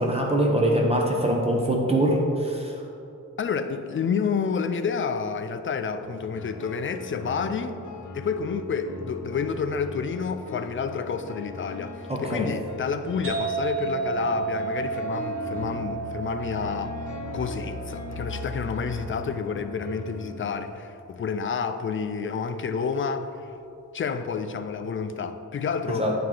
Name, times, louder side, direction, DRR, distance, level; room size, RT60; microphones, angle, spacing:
voice 1, 0.0-2.8 12.1-12.5 26.0-26.1, right 1 dB, 20° right, -1 dB, 0.7 m, -23 dB
voice 2, 3.4-7.8 8.1-16.9 17.3-23.5 23.9-26.2, left 5 dB, 40° left, 9 dB, 0.4 m, -29 dB
sound 1, 6.0-20.5, left 3 dB, 70° left, 0.8 m, -39 dB
sound 2, 13.2-20.7, right 6 dB, 45° right, 1.4 m, -33 dB
9.4 x 4.7 x 3.8 m, 2.7 s
wide cardioid pair, 155°, 31 cm